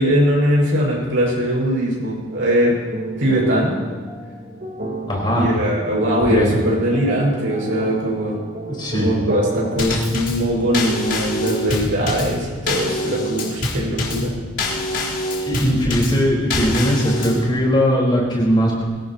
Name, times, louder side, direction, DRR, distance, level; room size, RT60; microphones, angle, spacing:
voice 1, 0.0-2.8 3.2-3.8 5.3-8.4 8.9-14.3, equal, 80° right, -3 dB, 6.2 m, -20 dB
sound 1, 2.3-10.0, right 1 dB, 45° right, 3.4 m, -30 dB
voice 2, 5.1-5.5 6.3-6.5 8.7-9.1 15.5-18.8, equal, 25° left, -3 dB, 4.6 m, -19 dB
Drum kit / Snare drum / Bass drum, 9.8-17.5, left 1 dB, 70° left, 3.8 m, -25 dB
24.0 x 17.0 x 3.0 m, 1.4 s
head